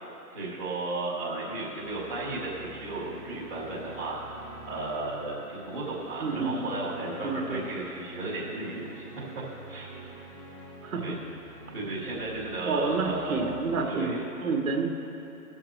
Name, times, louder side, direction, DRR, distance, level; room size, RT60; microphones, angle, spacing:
voice 1, 0.3-4.4 4.6-9.0 9.7-9.9 11.0-11.2 11.7-13.5 13.8-14.3, right 2 dB, ahead, -22 dB, 0.7 m, -34 dB
sound 1, 1.8-13.9, right 2 dB, 20° left, 1.7 m, -46 dB
voice 2, 6.2-6.7 7.2-7.7 10.8-11.2 12.6-14.1 14.4-14.9, right 4 dB, 55° right, 1 dB, 1.7 m, -29 dB
20.5 x 7.5 x 3.1 m, 2.9 s
hypercardioid pair, 170°, 47 cm